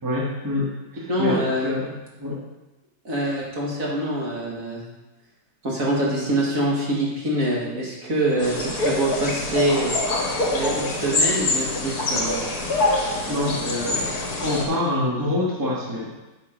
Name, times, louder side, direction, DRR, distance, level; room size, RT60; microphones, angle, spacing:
voice 1, 0.0-1.9 2.2-2.4 13.3-14.1 14.4-16.1, left 1 dB, 10° right, -4 dB, 1.6 m, -26 dB
voice 2, 1.1-1.7 3.0-4.8 5.6-10.0 10.5-12.4, right 1 dB, 55° right, -4 dB, 2.2 m, -24 dB
sound 1, 8.4-14.7, left 2 dB, 65° left, 2.1 m, -25 dB
8.2 x 6.8 x 5.2 m, 1.1 s
omnidirectional pair, 1.8 m